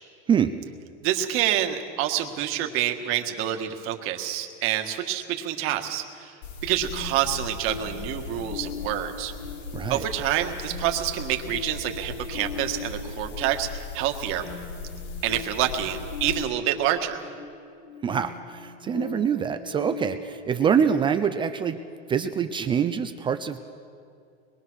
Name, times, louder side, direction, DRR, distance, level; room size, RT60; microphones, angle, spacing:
voice 1, 1.0-6.3 6.6-9.3 9.9-14.5 15.2-17.2, right 12 dB, 45° right, 5 dB, 1.8 m, -27 dB
sound 1, 6.4-16.4, left 4 dB, 60° left, 3.2 m, -38 dB
sound 2, 6.9-22.5, left 6 dB, 75° left, 3.3 m, -40 dB
voice 2, 9.7-10.0 18.0-21.8 22.1-23.6, right 7 dB, 15° right, 9 dB, 0.5 m, -25 dB
24.5 x 22.0 x 6.4 m, 2.3 s
supercardioid pair, 155°, 31 cm